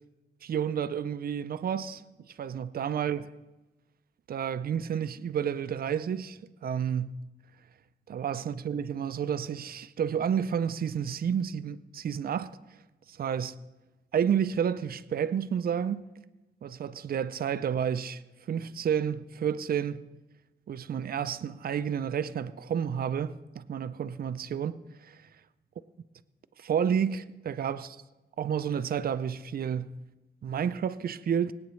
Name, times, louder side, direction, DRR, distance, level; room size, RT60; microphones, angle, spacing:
voice 1, 0.4-2.0 2.4-3.3 4.3-7.2 8.1-12.5 13.1-13.6 14.1-16.0 16.6-18.2 18.5-20.0 20.7-24.8 25.0-25.2 26.6-28.0 28.4-30.0 30.4-31.5, right 8 dB, 60° right, 0.4 m, -30 dB
25.5 x 8.9 x 3.2 m
wide cardioid pair, 160°, 17 cm